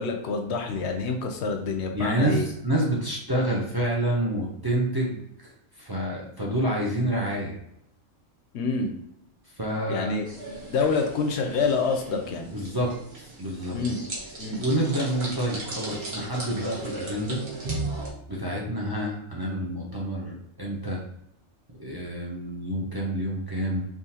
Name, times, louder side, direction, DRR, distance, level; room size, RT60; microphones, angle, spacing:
voice 1, 0.0-2.5 8.5-8.9 9.9-10.2 10.7-12.5 13.7-14.0 14.4-14.6, left 4 dB, 65° left, 4 dB, 0.8 m, -27 dB
voice 2, 1.9-5.5 5.8-7.6 9.6-10.1 12.5-13.8 14.5-17.4 18.3-21.0 21.8-23.8, right 1 dB, 30° right, -3 dB, 0.4 m, -28 dB
sound 1, 10.3-18.1, right 2 dB, 55° right, 1.2 m, -37 dB
3.7 x 2.8 x 2.8 m, 0.77 s
omnidirectional pair, 1.4 m